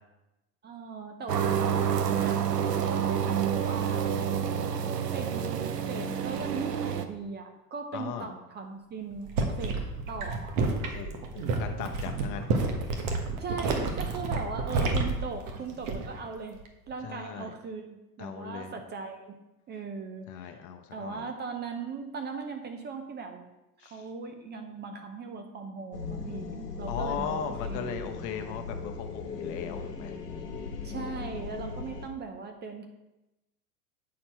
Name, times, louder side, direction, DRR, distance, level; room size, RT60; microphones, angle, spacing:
voice 1, 0.6-2.4 2.9-4.1 5.1-10.6 13.4-16.6 16.9-19.4 19.7-20.5 20.9-23.5 23.8-28.1 30.4-30.5 30.8-32.9, right 4 dB, 20° right, 5 dB, 0.6 m, -39 dB
sound 1, 1.3-7.1, right 8 dB, 90° right, 0.6 m, -28 dB
voice 2, 7.9-8.3 10.8-12.5 17.0-17.5 18.2-18.7 20.3-21.3 23.8-24.0 26.9-30.1, left 8 dB, 40° left, 5 dB, 0.8 m, -38 dB
sound 2, 9.1-16.2 16.5-16.9, right 3 dB, 60° right, 1.3 m, -30 dB
sound 3, 25.9-32.1, left 4 dB, 80° left, 1.1 m, -38 dB
8.4 x 4.4 x 4.4 m, 0.96 s
hypercardioid pair, 90°, 47 cm